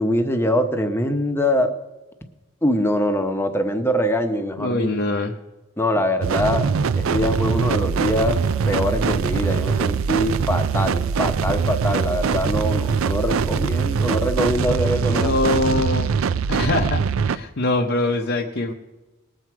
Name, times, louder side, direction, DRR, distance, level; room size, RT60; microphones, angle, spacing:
voice 1, 0.0-1.7 2.6-4.9 5.8-6.7 7.0-8.4 8.7-15.4 15.7-15.8, left 1 dB, 10° left, 7 dB, 0.9 m, -23 dB
voice 2, 4.6-5.3 15.1-16.1 16.5-18.7, left 2 dB, 55° left, 1 dB, 0.8 m, -23 dB
sound 1, 6.2-17.4, right 6 dB, 65° right, 0.4 m, -22 dB
19.5 x 7.6 x 4.7 m, 1.1 s
head